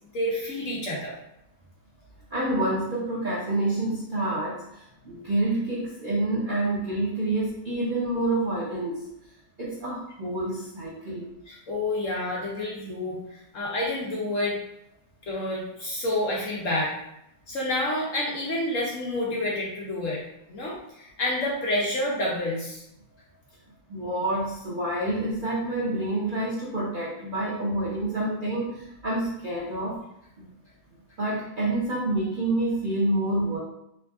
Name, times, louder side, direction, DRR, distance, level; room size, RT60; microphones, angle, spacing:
voice 1, 0.1-1.1 11.5-14.5 15.3-16.9 17.5-20.2 20.5-22.8, left 1 dB, 60° left, -4 dB, 0.8 m, -29 dB
voice 2, 2.3-9.1 9.6-11.3 23.9-30.0 30.4-30.5 31.2-33.6, right 1 dB, 75° right, -7 dB, 0.4 m, -28 dB
3.5 x 3.5 x 2.3 m, 0.81 s
omnidirectional pair, 2.0 m